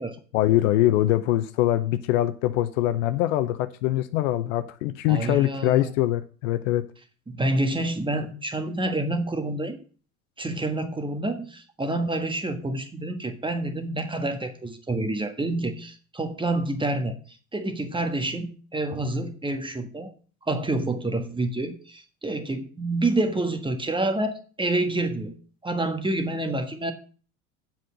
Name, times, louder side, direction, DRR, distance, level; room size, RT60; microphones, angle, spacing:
voice 1, 0.3-6.8, left 14 dB, 60° left, 1.0 m, -23 dB
voice 2, 5.1-5.9 7.3-9.8 10.4-17.2 17.5-20.1 20.5-25.3 25.6-26.9, right 2 dB, 10° right, 1.5 m, -28 dB
7.7 x 6.0 x 7.5 m
hypercardioid pair, 75°, 43 cm